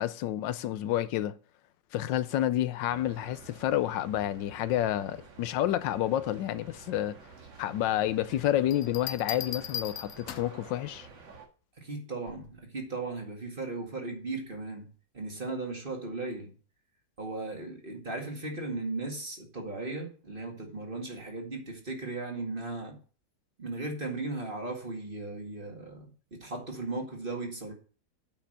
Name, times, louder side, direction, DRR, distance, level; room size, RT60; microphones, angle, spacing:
voice 1, 0.0-1.3 1.9-7.2 7.6-11.1, left 12 dB, 85° left, 1.4 m, -29 dB
sound 1, 2.9-11.5, right 4 dB, 90° right, 2.7 m, -51 dB
sound 2, 8.7-10.7 12.3-12.6, left 9 dB, 60° left, 0.9 m, -38 dB
voice 2, 11.8-14.9 15.1-16.5 17.2-23.0 23.6-27.7, right 2 dB, 30° right, 2.1 m, -37 dB
8.9 x 5.8 x 6.6 m
omnidirectional pair, 1.9 m